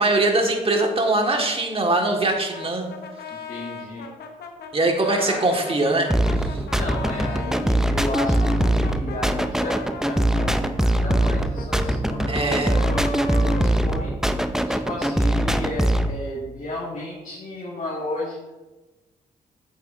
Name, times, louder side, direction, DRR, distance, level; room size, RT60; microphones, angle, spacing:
voice 1, 0.0-2.9 4.7-6.1 6.4-6.6 12.3-12.8, right 2 dB, 35° right, 2 dB, 1.7 m, -22 dB
Brass instrument, 2.5-7.7 8.1-14.5, left 3 dB, 70° left, 1.0 m, -37 dB
voice 2, 3.3-4.1 5.1-5.4 6.5-12.6 12.9-14.1 14.7-18.5, left 2 dB, 45° left, -5 dB, 2.2 m, -33 dB
sound 1, 6.1-16.1, right 1 dB, 5° right, 0.6 m, -22 dB
8.2 x 7.5 x 2.6 m, 1.1 s
supercardioid pair, 50°, 17 cm